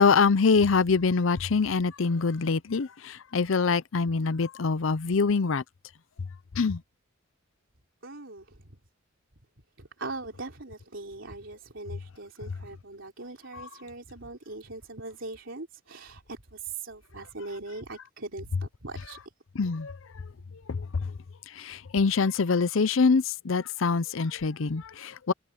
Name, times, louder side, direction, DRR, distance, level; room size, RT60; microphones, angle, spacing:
voice 1, 0.0-5.6 6.6-6.8 13.5-13.6 19.6-19.9 20.7-20.8 21.6-25.3, left 4 dB, 75° left, 0.6 m, -24 dB
voice 2, 8.0-8.7 9.8-19.2, right 3 dB, 70° right, 3.4 m, -41 dB
head